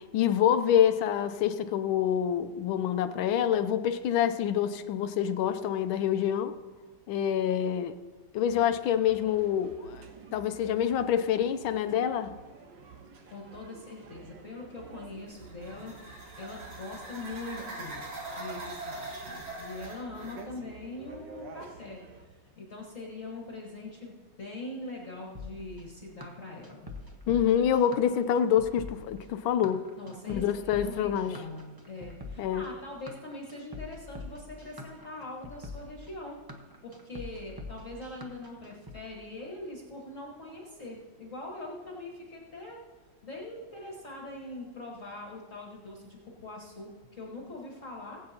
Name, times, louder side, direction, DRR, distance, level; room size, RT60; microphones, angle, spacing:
voice 1, 0.0-6.5 7.1-8.0 8.3-10.0 10.3-12.3 27.3-29.8 30.3-31.4 32.4-32.7, left 9 dB, 90° left, 9 dB, 1.5 m, -26 dB
sound 1, 8.4-22.3, right 5 dB, 65° right, 1.7 m, -50 dB
voice 2, 13.3-26.9 30.0-36.4 36.8-42.8 43.2-48.2, left 2 dB, 40° left, -3 dB, 1.7 m, -42 dB
sound 2, 15.2-20.5, right 2 dB, 85° right, 3.5 m, -42 dB
sound 3, 25.3-39.0, left 2 dB, 20° right, 0.7 m, -44 dB
20.0 x 8.7 x 2.8 m, 1.5 s
omnidirectional pair, 2.2 m